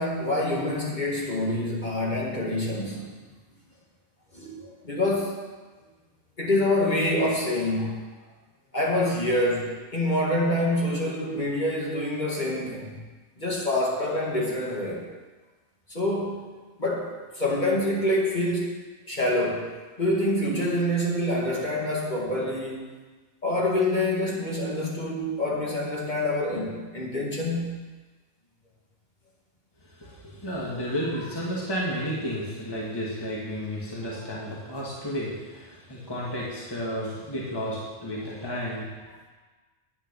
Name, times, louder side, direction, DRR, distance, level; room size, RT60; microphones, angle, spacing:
voice 1, 0.0-3.1 4.3-5.4 6.4-8.0 8.7-13.0 13.4-15.0 15.9-16.4 16.8-18.7 19.1-19.7 20.0-22.9 23.4-27.8, left 1 dB, 40° left, -3 dB, 2.1 m, -26 dB
voice 2, 29.8-39.3, equal, 20° left, -4 dB, 1.7 m, -32 dB
9.9 x 8.8 x 5.3 m, 1.3 s
omnidirectional pair, 1.2 m